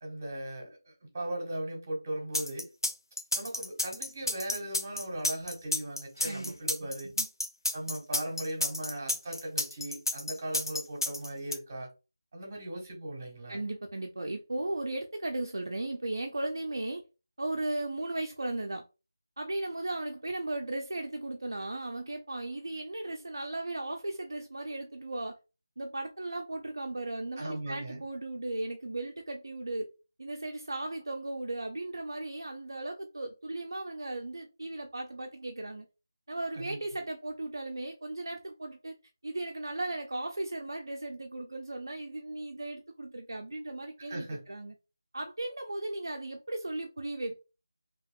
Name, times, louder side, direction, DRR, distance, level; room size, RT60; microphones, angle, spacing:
voice 1, 0.0-2.6 3.3-7.1 7.7-11.9 12.3-13.6 27.4-28.0 36.6-36.8 44.1-44.4, right 1 dB, 30° right, 1.4 m, -38 dB
sound 1, 2.3-11.5, left 1 dB, 80° left, 0.6 m, -31 dB
voice 2, 13.5-17.0 17.4-18.8 19.4-25.4 25.8-29.9 30.2-35.9 36.3-38.9 39.2-44.7 45.1-47.4, right 2 dB, 65° right, 0.5 m, -36 dB
3.4 x 2.9 x 2.2 m
figure-of-eight pair, 165°, 2 cm